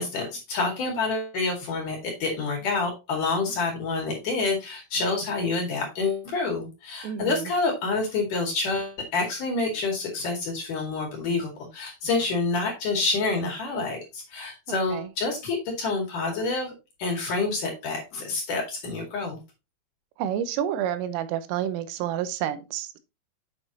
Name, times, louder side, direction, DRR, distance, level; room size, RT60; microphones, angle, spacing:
voice 1, 0.0-16.7 17.0-19.4, left 3 dB, 50° left, 3.0 m, -28 dB
voice 2, 7.0-7.5 14.7-15.1 20.2-23.0, right 10 dB, 85° right, 3.5 m, -29 dB
8.5 x 6.6 x 2.9 m
omnidirectional pair, 5.7 m